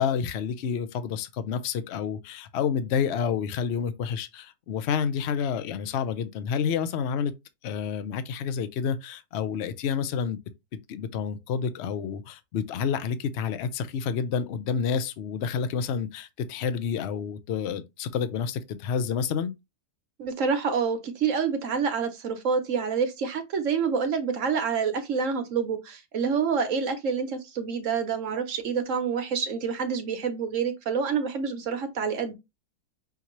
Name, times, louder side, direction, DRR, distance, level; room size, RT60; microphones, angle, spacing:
voice 1, 0.0-7.3 7.6-10.4 10.9-19.5, left 7 dB, 60° left, 0.7 m, -29 dB
voice 2, 20.2-32.3, right 6 dB, 60° right, 1.1 m, -27 dB
5.8 x 2.8 x 3.1 m
omnidirectional pair, 1.7 m